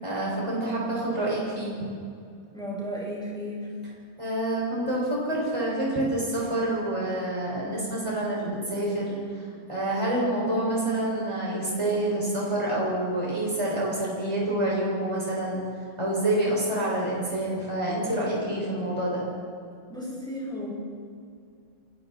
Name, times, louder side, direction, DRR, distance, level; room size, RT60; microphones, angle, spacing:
voice 1, 0.0-1.8 4.2-9.2 9.7-15.6 16.0-19.2, right 1 dB, 25° right, -5 dB, 6.3 m, -27 dB
voice 2, 2.5-3.7 19.9-20.7, equal, 5° left, -5 dB, 7.0 m, -34 dB
29.0 x 22.0 x 4.4 m, 2.4 s
omnidirectional pair, 1.3 m